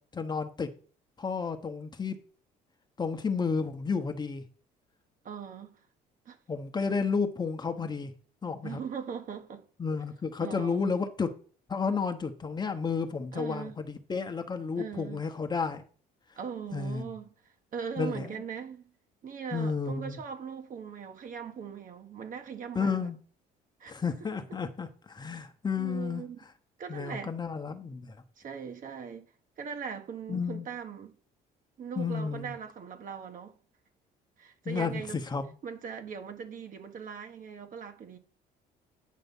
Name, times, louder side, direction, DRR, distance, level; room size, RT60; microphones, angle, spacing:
voice 1, 0.1-0.7 1.2-2.2 3.0-4.4 6.5-8.1 8.4-8.8 9.8-11.3 11.7-15.8 16.7-17.1 18.0-18.3 19.5-20.2 22.7-23.2 23.9-26.2 26.9-28.1 30.3-30.7 32.0-32.5 34.6-35.5, left 5 dB, 25° left, 1.0 m, -31 dB
voice 2, 5.2-5.8 6.2-6.4 8.6-9.7 10.4-11.0 13.3-13.8 14.8-15.2 16.4-18.9 19.2-23.1 23.8-23.9 24.2-24.3 25.8-26.4 26.8-27.3 28.4-29.3 29.6-31.2 31.8-33.6 34.4-35.2 35.6-38.2, right 7 dB, 50° right, 1.5 m, -40 dB
9.3 x 5.4 x 5.4 m
cardioid pair, 110°, 17 cm